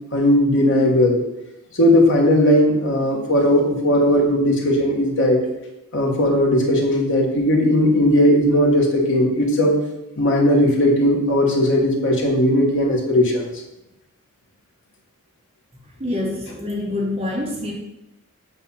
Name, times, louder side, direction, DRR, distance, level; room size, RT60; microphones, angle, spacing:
voice 1, 0.1-1.2 1.7-5.4 5.9-9.7 10.2-13.4, left 1 dB, 55° left, 1 dB, 1.3 m, -17 dB
voice 2, 16.0-17.7, left 2 dB, 25° right, -1 dB, 1.0 m, -26 dB
8.0 x 2.9 x 5.6 m, 0.90 s
head